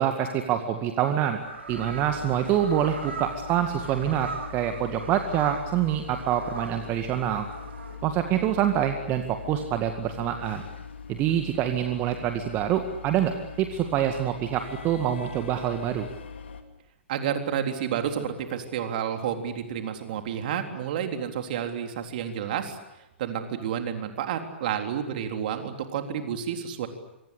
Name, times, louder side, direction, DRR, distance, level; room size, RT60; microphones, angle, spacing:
voice 1, 0.0-1.4 1.7-7.5 8.0-10.6 11.1-16.1, right 10 dB, 30° right, 6 dB, 2.0 m, -26 dB
sound 1, 1.0-8.0, right 4 dB, 65° right, 7.5 m, -40 dB
sound 2, 1.7-16.6, left 6 dB, 65° left, 3.0 m, -41 dB
voice 2, 17.1-22.8 23.2-26.9, right 8 dB, 50° right, 6 dB, 3.7 m, -30 dB
27.0 x 24.5 x 8.4 m, 0.92 s
figure-of-eight pair, 110°, 6 cm